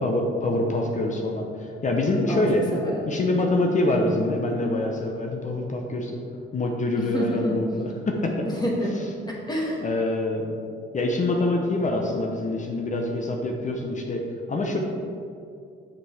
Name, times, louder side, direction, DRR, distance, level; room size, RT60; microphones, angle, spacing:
voice 1, 0.0-2.7 3.0-6.2 6.5-8.5 8.9-9.1 9.8-10.6 10.9-14.2 14.5-14.8, left 2 dB, 40° left, 1 dB, 0.9 m, -25 dB
voice 2, 2.7-3.2 7.0-7.6 8.5-9.0 9.3-9.8, equal, 20° left, -3 dB, 1.9 m, -28 dB
6.7 x 5.4 x 4.9 m, 2.4 s
cardioid pair, 90°, 20 cm